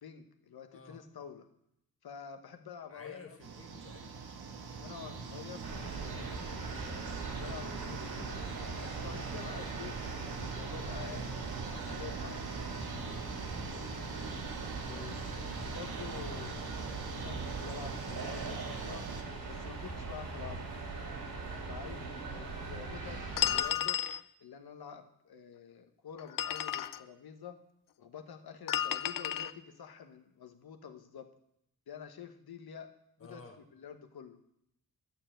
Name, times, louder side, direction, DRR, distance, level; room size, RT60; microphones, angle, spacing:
voice 1, 0.0-1.4 2.0-3.4 4.7-6.7 7.4-8.4 8.8-11.3 11.7-12.5 13.8-14.1 14.9-19.0 19.5-20.7 21.5-24.0 24.4-27.6 28.0-31.3 31.9-32.9 33.2-33.4 33.7-34.4, left 7 dB, 80° left, 7 dB, 1.2 m, -48 dB
voice 2, 2.9-4.1 14.8-15.1 33.2-33.6, left 3 dB, 35° left, 3 dB, 1.6 m, -51 dB
sound 1, 3.4-19.2, right 5 dB, 85° right, 1.4 m, -43 dB
sound 2, 5.6-23.6, right 3 dB, 70° right, 2.6 m, -41 dB
sound 3, 23.4-24.2 26.2-27.0 28.7-29.5, left 10 dB, 60° left, 0.5 m, -32 dB
11.0 x 6.9 x 7.7 m, 0.78 s
wide cardioid pair, 135°, 37 cm